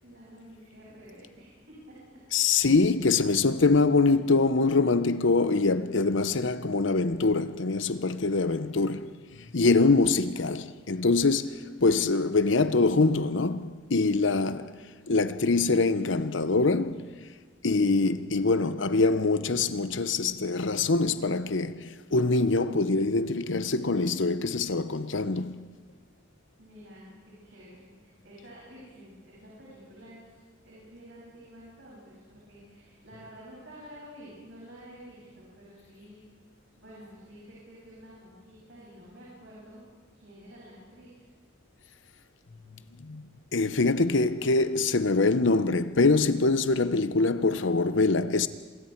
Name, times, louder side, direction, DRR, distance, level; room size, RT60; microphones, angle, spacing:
voice 1, 0.0-2.8 11.3-12.2 14.1-14.7 26.6-36.2 36.8-39.8 40.1-41.3, equal, 65° right, 6.9 m, -50 dB
voice 2, 2.3-14.7 15.1-17.2 17.6-25.6 43.0-43.2 43.5-48.5, left 3 dB, 70° left, 0.9 m, -24 dB
26.5 x 23.0 x 4.6 m
head